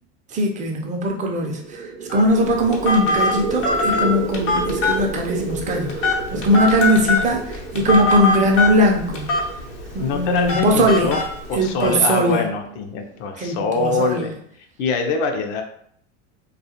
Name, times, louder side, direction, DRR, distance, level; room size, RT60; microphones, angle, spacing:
voice 1, 0.3-9.5 9.9-11.1 11.5-12.5 13.4-14.3, equal, 20° right, 2 dB, 0.5 m, -20 dB
sound 1, 1.4-12.9, right 5 dB, 90° right, 0.6 m, -32 dB
Telephone, 2.1-11.9, left 2 dB, 85° left, 0.9 m, -24 dB
voice 2, 10.0-11.2 11.5-14.3 14.8-15.6, left 4 dB, 60° left, 5 dB, 0.6 m, -23 dB
2.4 x 2.4 x 2.8 m, 0.66 s
supercardioid pair, 105°, 36 cm